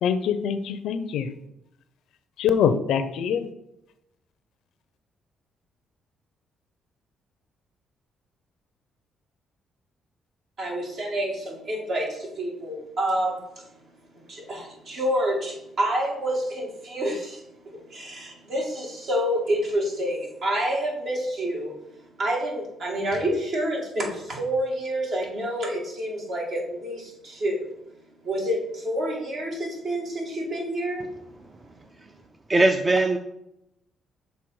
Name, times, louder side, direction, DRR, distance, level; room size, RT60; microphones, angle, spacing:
voice 1, 0.0-1.3 2.4-3.4, left 7 dB, 80° left, 11 dB, 0.5 m, -24 dB
voice 2, 10.6-27.7 28.2-31.0, right 1 dB, 60° right, -1 dB, 2.0 m, -28 dB
voice 3, 32.5-33.2, right 2 dB, 25° right, 7 dB, 0.4 m, -20 dB
6.4 x 3.4 x 4.7 m, 0.84 s
cardioid pair, 90°, 0 cm